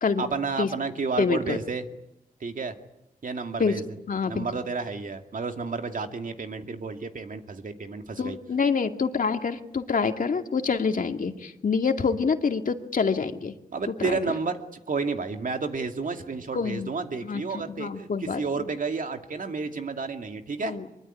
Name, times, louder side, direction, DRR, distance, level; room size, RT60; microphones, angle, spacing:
voice 1, 0.2-1.9 2.4-2.8 3.2-3.8 4.3-8.4 13.7-14.6 14.9-20.8, right 4 dB, 65° right, 6 dB, 2.4 m, -31 dB
voice 2, 1.2-1.6 3.6-3.8 4.1-4.5 8.2-13.5 14.0-14.2 16.5-16.9 17.2-18.6 20.6-20.8, left 5 dB, 65° left, 6 dB, 2.2 m, -26 dB
23.5 x 23.0 x 9.8 m, 0.87 s
cardioid pair, 70°, 15 cm